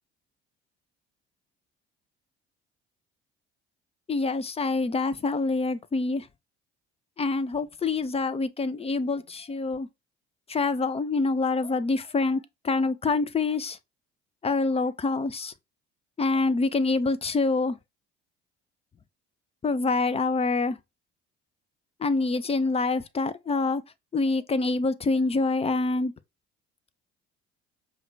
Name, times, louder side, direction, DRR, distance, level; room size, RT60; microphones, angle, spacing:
voice 1, 4.1-6.3 7.2-9.9 10.5-13.8 14.4-15.5 16.2-17.8 19.6-20.8 22.0-23.8 24.1-26.1, left 3 dB, 20° left, 0.4 m, -26 dB
5.4 x 2.2 x 3.2 m
figure-of-eight pair, 55°, 33 cm